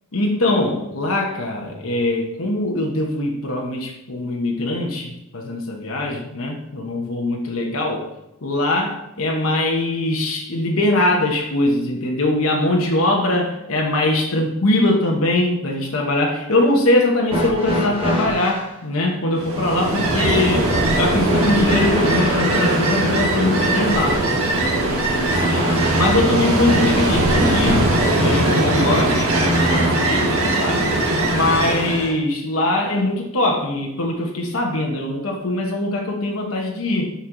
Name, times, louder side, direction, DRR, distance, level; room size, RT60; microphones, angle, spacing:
voice 1, 0.1-8.1 8.4-31.0 31.3-37.1, left 2 dB, 75° left, 0 dB, 1.1 m, -22 dB
sound 1, 17.3-18.7 21.3-26.4 29.3-30.4 31.6-31.7 32.7-32.8, equal, 25° right, 1.4 m, -26 dB
Ocean, 19.4-32.1, right 2 dB, 80° right, 1.4 m, -20 dB
7.2 x 4.6 x 3.9 m, 0.85 s
head